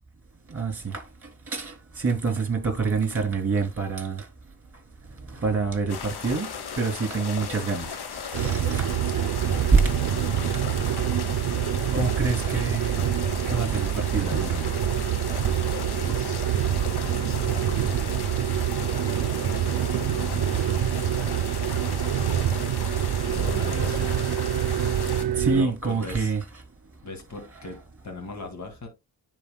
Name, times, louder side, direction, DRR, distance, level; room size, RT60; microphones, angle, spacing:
voice 1, 0.5-1.0 1.5-4.2 5.3-8.9 9.7-9.8 11.9-13.1 13.5-14.7 25.4-26.4, right 4 dB, 35° right, 2.8 m, -26 dB
sound 1, 5.9-25.2, left 6 dB, 90° left, 1.2 m, -36 dB
sound 2, 8.3-25.6, right 11 dB, 80° right, 0.6 m, -26 dB
voice 2, 10.2-10.6 15.6-16.4 16.8-18.3 19.8-20.5 23.2-24.2 25.4-26.3 27.0-28.9, left 3 dB, 45° left, 2.0 m, -40 dB
9.8 x 4.2 x 2.3 m
cardioid pair, 80°, 38 cm